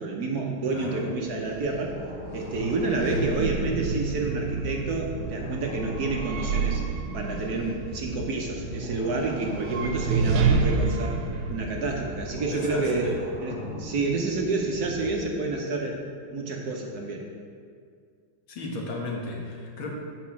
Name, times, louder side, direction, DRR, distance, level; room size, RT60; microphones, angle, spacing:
voice 1, 0.0-1.9 2.3-6.8 7.1-13.1 13.4-13.5 13.8-16.0 16.3-17.2, right 3 dB, 60° right, 0 dB, 1.2 m, -29 dB
voice 2, 0.7-1.0 12.3-13.2 13.5-13.8 18.5-19.9, left 2 dB, 85° left, -1 dB, 2.1 m, -35 dB
sound 1, 1.0-13.2, right 4 dB, 90° right, 1.6 m, -30 dB
sound 2, 1.9-15.2, equal, 5° right, 1.2 m, -40 dB
8.2 x 5.3 x 5.8 m, 2.1 s
omnidirectional pair, 2.2 m